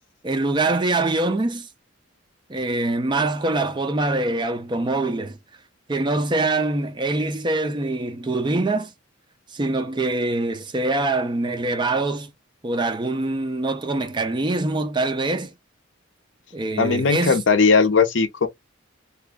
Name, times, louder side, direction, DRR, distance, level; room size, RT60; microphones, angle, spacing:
voice 1, 0.2-1.7 2.5-5.4 5.9-8.9 9.5-12.3 12.6-15.5 16.5-17.4, right 2 dB, 20° right, 0.4 m, -24 dB
voice 2, 16.8-18.5, left 4 dB, 65° left, 0.6 m, -18 dB
2.8 x 2.2 x 3.4 m
head